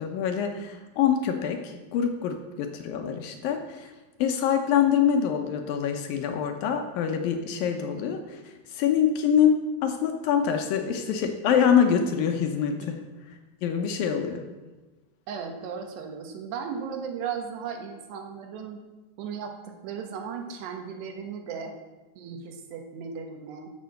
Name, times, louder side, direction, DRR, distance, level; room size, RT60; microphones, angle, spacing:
voice 1, 0.0-3.9 4.2-13.0 13.6-14.4, left 8 dB, 70° left, 5 dB, 2.4 m, -25 dB
voice 2, 15.3-18.8 19.2-21.7 22.2-23.7, right 6 dB, 85° right, 4 dB, 3.5 m, -36 dB
12.5 x 6.7 x 7.6 m, 1.2 s
omnidirectional pair, 4.7 m